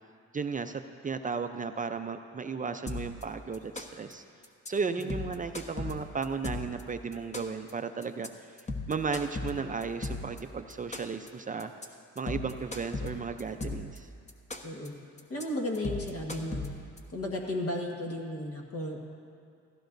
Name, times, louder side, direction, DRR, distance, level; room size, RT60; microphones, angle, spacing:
voice 1, 0.3-4.2 4.7-8.3 8.9-11.7 12.2-14.1, right 5 dB, 25° right, 7 dB, 0.5 m, -34 dB
sound 1, 2.9-3.2 3.5-4.1 4.4-4.7 5.0-6.8 7.1-7.7 8.0-8.3 8.6-10.4 10.7-11.3 11.6-11.9 12.2-14.0 14.3-14.9 15.2-15.4 15.7-17.0, left 2 dB, 25° left, 1.1 m, -36 dB
voice 2, 14.6-15.0 15.3-16.7 17.1-19.0, left 1 dB, 50° left, 0 dB, 1.5 m, -34 dB
16.5 x 15.0 x 2.6 m, 2.3 s
cardioid pair, 90°, 30 cm